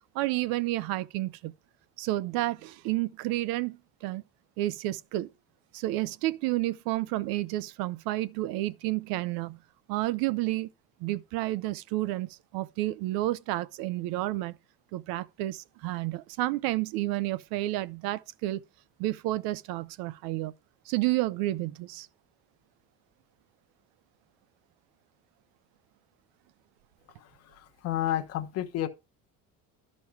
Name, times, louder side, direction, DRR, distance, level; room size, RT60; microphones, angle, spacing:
voice 1, 0.1-1.5 2.0-4.2 4.6-5.3 5.7-9.6 9.9-10.7 11.0-14.6 14.9-18.6 19.0-20.5 20.9-22.1, right 17 dB, 85° right, 0.7 m, -30 dB
voice 2, 27.2-28.9, left 12 dB, 45° left, 0.9 m, -31 dB
12.0 x 5.4 x 4.5 m
cardioid pair, 175°, 35 cm